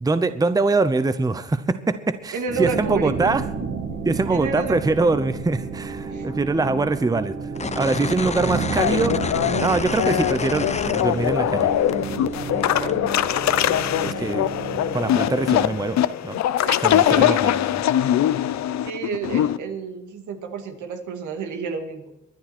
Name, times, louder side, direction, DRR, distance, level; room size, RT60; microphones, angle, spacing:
voice 1, 0.0-3.4 4.0-7.3 7.8-9.2 9.6-11.7 14.0-14.5 14.9-16.0 16.2-16.4 16.8-17.8, right 3 dB, 10° right, 12 dB, 0.7 m, -23 dB
voice 2, 2.3-3.3 4.3-4.8 6.0-6.3 12.8-12.9 16.6-17.4 18.8-22.2, right 5 dB, 75° right, 5 dB, 2.2 m, -30 dB
sound 1, 2.5-15.8, right 5 dB, 50° right, 2.3 m, -31 dB
sound 2, 7.6-11.6 11.9-13.0, left 5 dB, 20° left, 0.7 m, -30 dB
sound 3, 8.8-19.6, left 12 dB, 65° left, 0.7 m, -22 dB
23.5 x 10.0 x 4.4 m, 0.90 s
cardioid pair, 90°, 30 cm